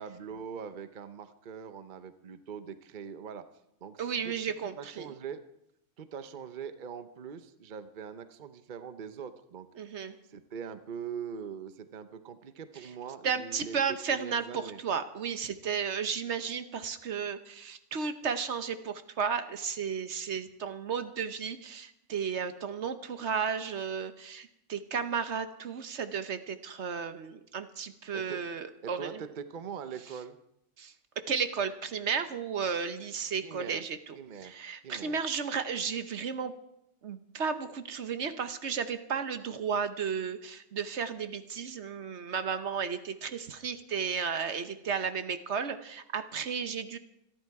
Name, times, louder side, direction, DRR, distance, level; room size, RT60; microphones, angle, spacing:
voice 1, 0.0-3.4 3.8-4.4 4.8-5.4 6.0-9.7 10.3-14.8 28.1-28.5 28.8-30.4 33.4-33.8 34.1-34.5 34.8-35.2, right 7 dB, 45° right, 11 dB, 0.9 m, -42 dB
voice 2, 4.0-5.1 9.8-10.1 13.2-29.2 30.8-30.9 31.3-34.2 34.4-36.5 37.0-47.0, right 6 dB, 65° right, 10 dB, 1.2 m, -33 dB
26.5 x 11.0 x 4.7 m, 0.81 s
omnidirectional pair, 1.3 m